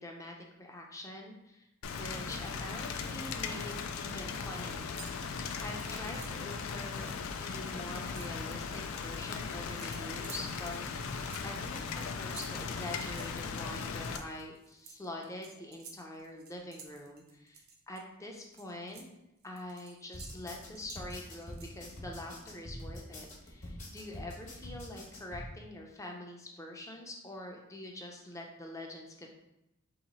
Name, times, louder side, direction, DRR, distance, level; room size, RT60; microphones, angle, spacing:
voice 1, 0.0-1.7 1.9-5.2 5.6-19.1 19.4-29.3, left 1 dB, 15° left, 0 dB, 0.5 m, -45 dB
Rain, 1.8-14.2, left 5 dB, 70° left, 0.3 m, -38 dB
sound 1, 3.1-3.8 4.1-4.6 4.9-6.5 6.9-7.0 7.3-9.0 9.8-18.0 18.4-22.0, right 5 dB, 45° right, 0.5 m, -53 dB
sound 2, 20.1-25.4, left 1 dB, 40° left, 1.0 m, -45 dB
2.9 x 2.9 x 4.1 m, 0.87 s
head